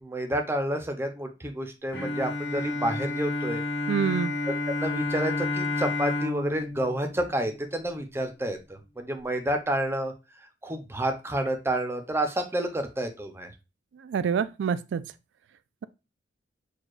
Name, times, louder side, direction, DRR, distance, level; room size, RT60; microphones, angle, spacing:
voice 1, 0.0-3.6 4.8-10.1 10.6-13.5, right 1 dB, 15° right, 0.6 m, -29 dB
Bowed string instrument, 1.9-8.1, left 2 dB, 75° left, 1.4 m, -31 dB
voice 2, 3.9-4.3 14.0-15.1, right 7 dB, 70° right, 0.3 m, -26 dB
6.4 x 2.3 x 2.4 m
head